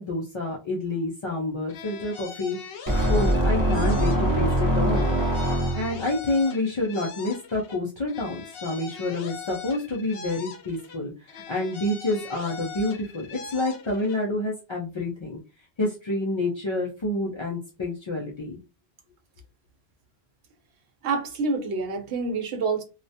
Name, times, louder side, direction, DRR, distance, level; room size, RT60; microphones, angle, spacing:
voice 1, 0.0-2.6 3.1-5.1 5.7-15.4 15.8-18.6, left 2 dB, 50° left, 0.3 m, -28 dB
sound 1, 1.7-4.6 4.9-7.8 8.1-11.0 11.3-14.2, left 6 dB, 70° left, 0.8 m, -41 dB
sound 2, 2.9-6.1, right 1 dB, 25° right, 0.4 m, -23 dB
voice 2, 21.0-22.8, right 4 dB, 80° right, 0.9 m, -27 dB
2.3 x 2.1 x 2.6 m
omnidirectional pair, 1.1 m